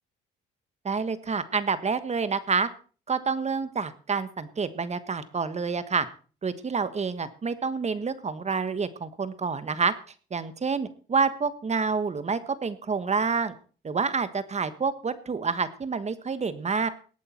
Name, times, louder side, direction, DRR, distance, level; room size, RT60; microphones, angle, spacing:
voice 1, 0.8-2.7 3.1-6.1 6.4-9.9 10.3-13.5 13.8-16.9, right 5 dB, 35° right, 13 dB, 1.4 m, -28 dB
19.5 x 8.4 x 4.4 m, 0.39 s
cardioid pair, 90°, 20 cm